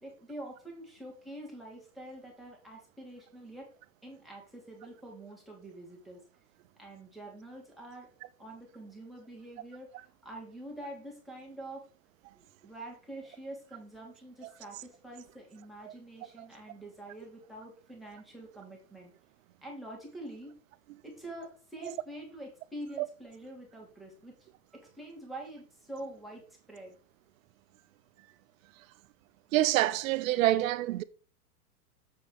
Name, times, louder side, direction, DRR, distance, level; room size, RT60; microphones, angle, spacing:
voice 1, 0.0-3.7 4.0-6.2 6.8-8.1 8.4-11.8 12.3-19.1 19.6-20.6 21.0-27.0, right 1 dB, ahead, 2.6 m, -46 dB
voice 2, 29.5-31.0, right 15 dB, 60° right, 0.7 m, -26 dB
7.7 x 4.1 x 4.9 m
hypercardioid pair, 130°, 46 cm